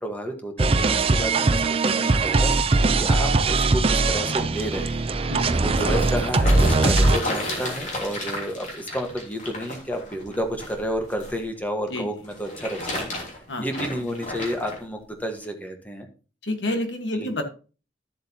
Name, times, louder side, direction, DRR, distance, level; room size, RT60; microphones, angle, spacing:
voice 1, 0.0-16.1 17.1-17.3, equal, 10° left, 4 dB, 1.4 m, -31 dB
sound 1, 0.6-7.2, right 3 dB, 30° right, 0.5 m, -21 dB
voice 2, 5.3-5.6 11.9-12.1 13.5-13.6 16.4-17.4, left 1 dB, 75° left, 6 dB, 1.5 m, -29 dB
sound 2, 5.3-11.4 12.2-14.8 15.4-15.5, left 1 dB, 45° left, 3.1 m, -32 dB
13.0 x 7.6 x 2.9 m, 0.36 s
head